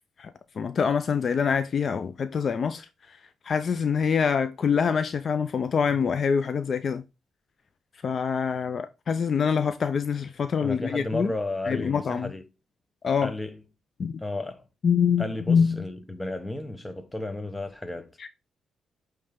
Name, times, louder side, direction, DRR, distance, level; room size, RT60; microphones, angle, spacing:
voice 1, 0.6-2.9 3.5-7.0 8.0-11.3 11.7-12.3 13.0-13.3 14.0-14.2 14.8-15.9, left 6 dB, 50° left, 0.5 m, -25 dB
voice 2, 10.6-12.5 13.2-13.6 14.2-14.7 15.2-18.2, left 2 dB, 15° left, 1.0 m, -33 dB
8.6 x 3.4 x 3.6 m
cardioid pair, 85°, 0 cm